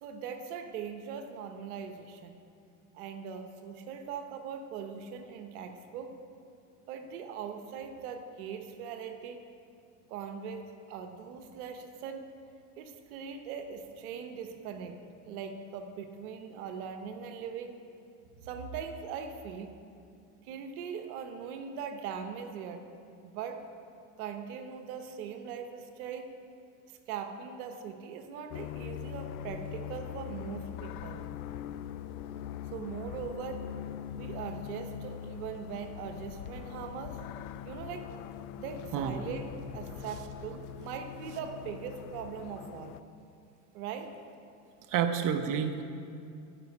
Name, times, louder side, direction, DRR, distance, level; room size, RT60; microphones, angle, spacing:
voice 1, 0.0-2.4 2.9-6.1 6.9-9.4 10.1-12.3 12.8-15.0 15.3-17.7 18.4-19.7 20.4-22.9 23.2-23.6 24.2-26.3 26.9-31.3 32.7-33.6 34.1-37.2 37.6-38.1 38.6-43.0 43.7-44.1, right 6 dB, 80° right, 7 dB, 1.1 m, -40 dB
sound 1, 28.5-43.0, left 10 dB, 85° left, 0.6 m, -42 dB
voice 2, 44.9-45.8, right 8 dB, 45° right, 7 dB, 0.9 m, -29 dB
13.0 x 5.4 x 8.2 m, 2.5 s
supercardioid pair, 100°, 43 cm